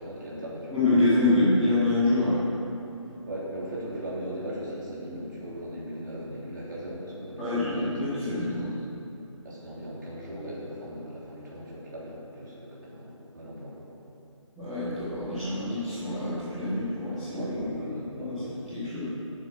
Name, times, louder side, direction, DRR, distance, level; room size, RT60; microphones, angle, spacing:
voice 1, 0.0-0.7 3.3-8.2 9.4-13.9 17.3-18.5 18.8-19.0, equal, 35° right, -6 dB, 3.2 m, -38 dB
voice 2, 0.7-2.4 7.4-8.7 14.6-17.5 18.2-18.3 18.7-19.1, left 2 dB, ahead, -19 dB, 1.8 m, -26 dB
9.1 x 8.5 x 7.4 m, 2.8 s
figure-of-eight pair, 165°, 17 cm